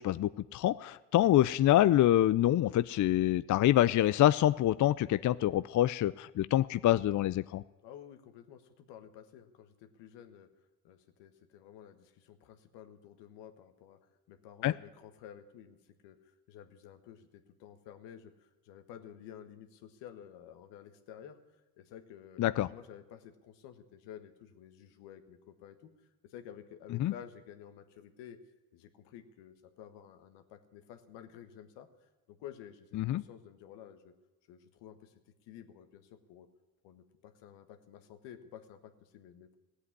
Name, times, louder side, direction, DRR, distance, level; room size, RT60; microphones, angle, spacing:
voice 1, 0.0-7.6 14.6-14.7 22.4-22.7 27.0-27.1 32.9-33.2, left 13 dB, 45° left, 16 dB, 0.5 m, -26 dB
voice 2, 7.8-10.5 10.8-14.0 14.3-21.4 21.8-22.4 22.7-25.9 26.2-28.4 28.7-34.1 34.5-36.5 36.8-39.6, left 9 dB, 80° left, 8 dB, 1.5 m, -52 dB
16.5 x 8.3 x 9.7 m, 1.1 s
hypercardioid pair, 55°, 42 cm